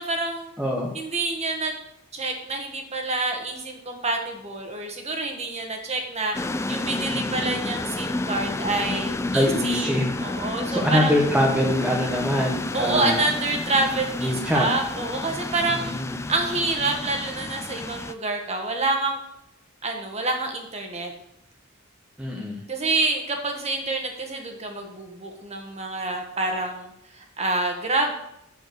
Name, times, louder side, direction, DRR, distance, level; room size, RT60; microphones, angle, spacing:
voice 1, 0.0-0.5 0.9-1.7 2.1-11.1 12.7-15.9 16.3-19.2 19.8-21.1 22.7-28.1, right 2 dB, 30° right, 3 dB, 1.5 m, -27 dB
voice 2, 0.6-0.9 7.1-7.5 9.3-10.2 10.7-13.2 14.2-14.7 15.7-16.2 22.2-22.6, left 1 dB, 5° right, -2 dB, 1.0 m, -24 dB
sound 1, 6.3-18.1, left 2 dB, 15° left, 0.3 m, -30 dB
7.1 x 6.8 x 6.4 m, 0.77 s
head